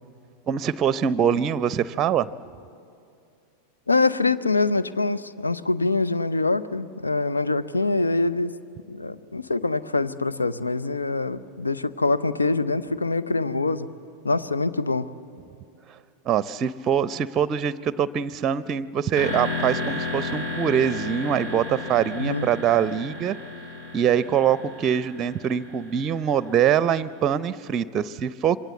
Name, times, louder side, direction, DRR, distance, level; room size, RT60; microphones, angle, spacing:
voice 1, 0.5-2.3 16.3-23.4 23.9-28.6, right 8 dB, 30° right, 18 dB, 0.6 m, -23 dB
voice 2, 3.9-8.5 8.9-13.9 14.2-15.1 22.2-22.5, left 3 dB, 80° left, 12 dB, 0.8 m, -24 dB
sound 1, 19.2-26.9, left 2 dB, 60° left, 7.4 m, -33 dB
27.0 x 23.5 x 8.3 m, 2.5 s
figure-of-eight pair, 90°, 0 cm